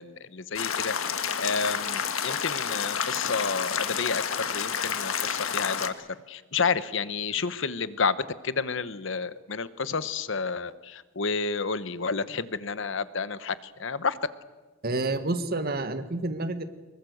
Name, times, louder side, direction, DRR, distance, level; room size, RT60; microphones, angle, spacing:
voice 1, 0.0-14.2, left 5 dB, 65° left, 14 dB, 1.0 m, -30 dB
sound 1, 0.6-5.9, left 7 dB, 90° left, 1.6 m, -30 dB
voice 2, 14.8-16.6, right 2 dB, 50° right, 9 dB, 1.7 m, -29 dB
25.0 x 22.0 x 8.0 m, 1.3 s
head